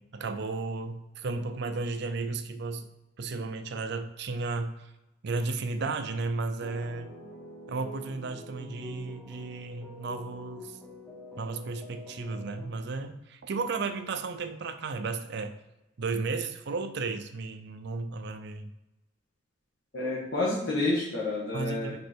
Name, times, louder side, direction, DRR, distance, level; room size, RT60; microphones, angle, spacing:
voice 1, 0.0-2.9 3.2-4.9 5.2-7.1 7.7-10.8 11.3-15.5 16.0-18.7 21.5-22.0, right 3 dB, 60° right, 9 dB, 0.5 m, -34 dB
sound 1, 6.6-12.7, left 1 dB, 5° left, 0.9 m, -46 dB
voice 2, 19.9-21.9, left 2 dB, 60° left, -7 dB, 1.6 m, -29 dB
5.3 x 4.3 x 4.5 m, 0.97 s
head